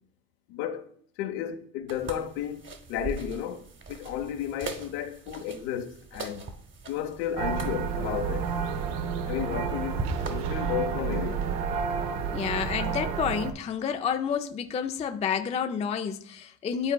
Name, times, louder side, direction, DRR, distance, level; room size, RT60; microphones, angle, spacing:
voice 1, 0.5-0.9 1.2-6.5 6.9-8.5 9.3-11.4, left 9 dB, 65° left, 1.0 m, -33 dB
sound 1, 1.9-10.3, right 3 dB, 25° right, 1.1 m, -41 dB
sound 2, 7.4-13.5, right 6 dB, 75° right, 0.9 m, -30 dB
voice 2, 12.3-16.9, left 7 dB, 15° left, 0.4 m, -29 dB
12.0 x 4.2 x 2.3 m
hypercardioid pair, 90°, 47 cm